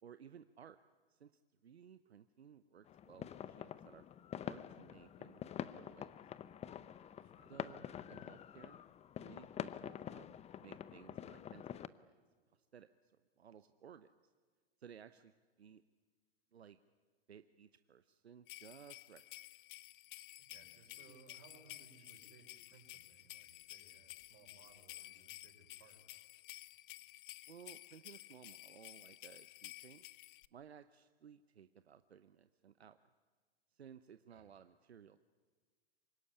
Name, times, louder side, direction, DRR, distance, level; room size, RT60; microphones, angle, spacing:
voice 1, 0.0-0.8 1.1-4.0 4.4-6.1 7.5-8.8 9.2-10.3 10.6-12.1 12.7-14.3 14.8-15.3 15.6-15.8 16.5-16.8 17.3-19.2 27.5-30.1 30.5-33.0 33.7-35.2, right 8 dB, 90° right, 11 dB, 0.8 m, -58 dB
sound 1, 2.9-11.9, left 10 dB, 20° left, 0.7 m, -47 dB
voice 2, 7.2-7.5 20.4-26.0 34.3-34.5, right 5 dB, 50° right, 3 dB, 6.3 m, -64 dB
sound 2, 18.5-30.5, left 17 dB, 55° left, 0.7 m, -54 dB
25.0 x 21.5 x 10.0 m, 1.5 s
hypercardioid pair, 105°, 31 cm